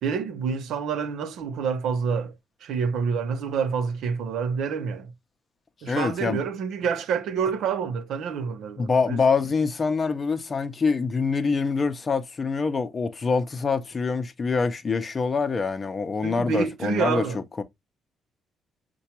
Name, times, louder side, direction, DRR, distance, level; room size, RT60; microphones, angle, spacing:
voice 1, 0.0-2.3 2.6-5.1 5.8-9.2 16.2-17.4, right 6 dB, 80° right, 0.6 m, -27 dB
voice 2, 5.9-6.4 8.8-17.6, left 4 dB, 35° left, 0.6 m, -25 dB
5.7 x 2.3 x 2.8 m
cardioid pair, 90°, 0 cm